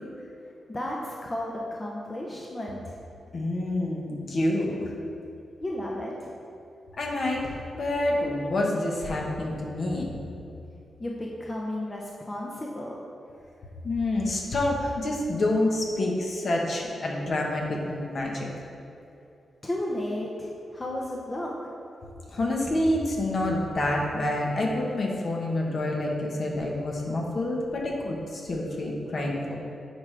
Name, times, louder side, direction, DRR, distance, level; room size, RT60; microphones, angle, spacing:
voice 1, 0.7-3.0 5.6-6.3 11.0-13.0 19.6-21.5, left 1 dB, 25° left, -2 dB, 0.7 m, -33 dB
voice 2, 3.3-4.9 7.0-10.1 13.8-18.5 22.3-29.5, left 1 dB, 50° left, -1 dB, 1.1 m, -27 dB
9.5 x 4.8 x 3.3 m, 2.7 s
cardioid pair, 100°, 0 cm